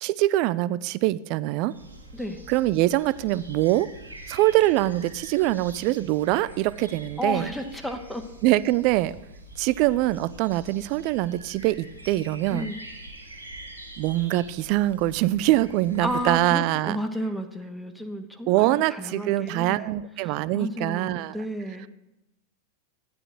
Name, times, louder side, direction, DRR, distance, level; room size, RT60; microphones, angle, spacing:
voice 1, 0.0-1.7 2.5-3.9 4.3-7.5 8.4-9.2 9.6-12.7 14.0-17.0 18.5-21.4, right 16 dB, 45° right, 18 dB, 0.3 m, -23 dB
sound 1, 1.7-16.5, right 1 dB, 90° right, 1.7 m, -45 dB
voice 2, 2.1-2.4 7.2-8.3 12.5-12.8 16.0-19.9 20.2-21.9, equal, 5° left, 6 dB, 0.7 m, -32 dB
12.0 x 9.8 x 3.1 m, 0.92 s
figure-of-eight pair, 90°, 0 cm